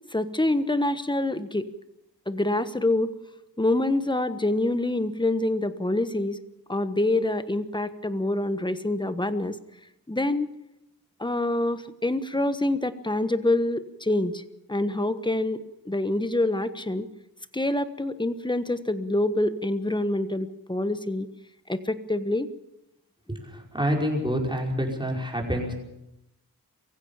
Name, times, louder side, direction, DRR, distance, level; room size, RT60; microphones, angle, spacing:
voice 1, 0.1-1.7 2.3-3.1 3.6-6.4 6.7-9.5 10.1-10.5 11.2-14.4 14.7-15.6 15.8-17.1 17.5-21.3 21.7-22.5, left 1 dB, 10° left, 11 dB, 1.3 m, -26 dB
voice 2, 23.3-25.7, equal, 10° right, 0 dB, 5.3 m, -27 dB
23.5 x 15.5 x 7.3 m, 0.87 s
wide cardioid pair, 70°, 38 cm